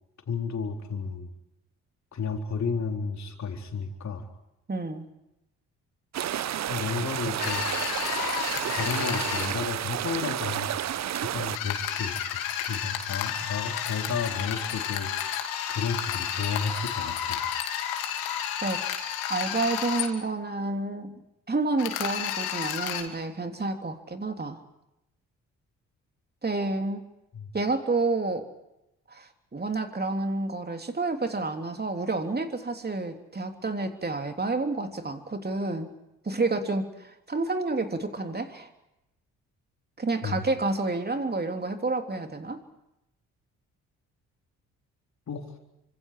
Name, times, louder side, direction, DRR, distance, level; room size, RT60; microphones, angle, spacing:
voice 1, 0.3-1.3 2.1-4.3 6.7-7.6 8.7-10.8 11.1-12.2 12.6-15.1 15.7-17.4 27.3-27.5 40.2-40.4 45.3-45.5, left 5 dB, 50° left, 3 dB, 4.0 m, -32 dB
voice 2, 4.7-5.1 18.6-18.8 19.3-21.2 21.5-24.6 26.4-27.1 27.5-28.5 29.1-35.9 36.2-38.7 40.0-42.6, right 3 dB, 25° right, 6 dB, 3.3 m, -29 dB
sound 1, 6.1-11.6, right 11 dB, 50° right, 0.9 m, -31 dB
sound 2, 7.4-9.5 11.5-20.1 21.8-23.0, left 9 dB, 80° left, 2.5 m, -31 dB
29.0 x 25.5 x 4.9 m, 0.88 s
hypercardioid pair, 45°, 35 cm